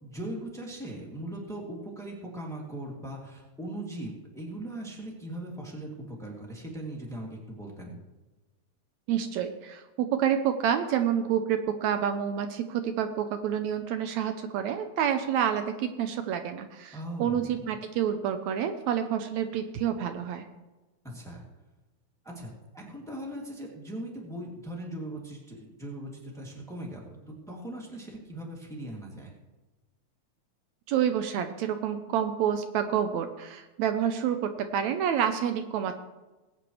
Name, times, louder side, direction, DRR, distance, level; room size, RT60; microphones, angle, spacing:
voice 1, 0.0-8.0 16.9-17.6 21.0-21.4 22.2-27.2 27.5-29.3, right 1 dB, ahead, -2 dB, 1.8 m, -39 dB
voice 2, 9.1-20.5 30.9-35.9, right 9 dB, 75° right, 8 dB, 2.0 m, -28 dB
20.0 x 9.0 x 3.2 m, 1.1 s
omnidirectional pair, 3.4 m